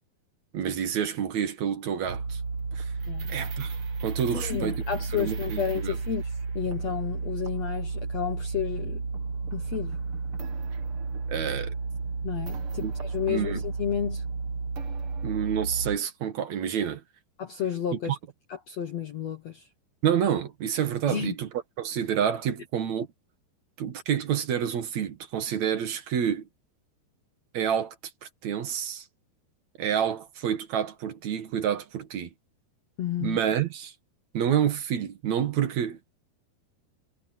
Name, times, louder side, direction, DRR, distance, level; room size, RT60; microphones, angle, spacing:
voice 1, 0.5-2.4 2.8-2.9 3.3-3.8 4.0-4.8 5.1-6.0 11.3-11.7 12.8-12.9 13.3-13.6 15.2-17.0 18.1-18.2 20.0-21.5 21.8-23.1 23.8-26.5 27.5-28.0 28.2-29.0 29.8-32.3 33.2-33.9 34.3-36.0, right 9 dB, 55° right, 2.1 m, -28 dB
sound 1, 2.0-16.0, right 4 dB, 80° right, 1.2 m, -32 dB
voice 2, 4.3-9.0 9.5-9.9 12.2-14.2 17.4-18.2 18.5-19.7 21.1-21.3 33.0-33.4, left 9 dB, 75° left, 1.5 m, -31 dB
omnidirectional pair, 5.0 m